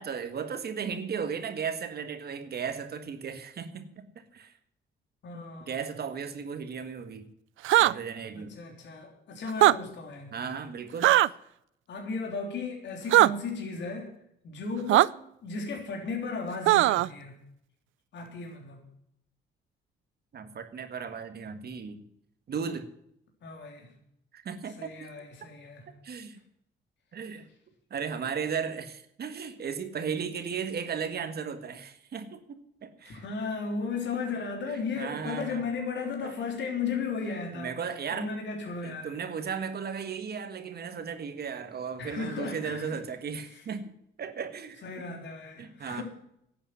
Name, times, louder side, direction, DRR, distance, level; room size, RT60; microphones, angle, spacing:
voice 1, 0.0-4.5 5.7-7.2 7.8-8.6 10.3-11.1 20.3-22.0 22.5-22.9 24.3-25.1 26.0-26.4 27.1-27.5 27.9-33.2 34.6-35.7 36.2-36.3 37.5-38.3 38.8-43.9 44.2-45.0 45.6-46.0, right 6 dB, 55° right, 9 dB, 1.6 m, -36 dB
voice 2, 5.2-5.8 8.3-10.4 11.9-14.1 14.4-17.3 18.1-18.8 23.4-23.9 24.8-25.8 33.0-39.2 42.0-43.0 43.5-43.6 44.8-46.0, left 4 dB, 65° left, 2 dB, 3.6 m, -35 dB
sound 1, 7.6-7.9 9.5-9.8 11.0-11.3 13.1-13.3 14.9-15.1 16.7-17.1, right 15 dB, 80° right, 0.5 m, -19 dB
11.0 x 8.8 x 9.9 m, 0.75 s
cardioid pair, 90°, 20 cm